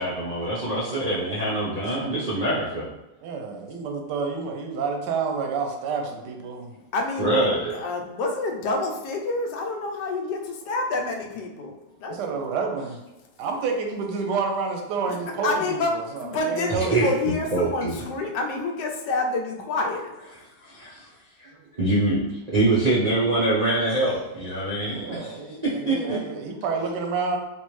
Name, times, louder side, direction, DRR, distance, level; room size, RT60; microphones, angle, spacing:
voice 1, 0.0-2.9 7.2-7.7 16.7-17.1 17.5-18.0 20.3-21.0 21.8-22.2 22.5-26.2, right 2 dB, 65° right, -9 dB, 0.4 m, -24 dB
voice 2, 3.2-6.8 12.1-13.0 13.4-17.2 21.5-21.6 24.9-27.4, right 5 dB, 90° right, 3 dB, 1.2 m, -29 dB
voice 3, 6.9-7.5 7.8-11.7 12.0-12.2 15.4-15.9 16.2-20.0, left 3 dB, 85° left, 2 dB, 1.2 m, -27 dB
3.4 x 2.5 x 3.0 m, 1.0 s
omnidirectional pair, 1.8 m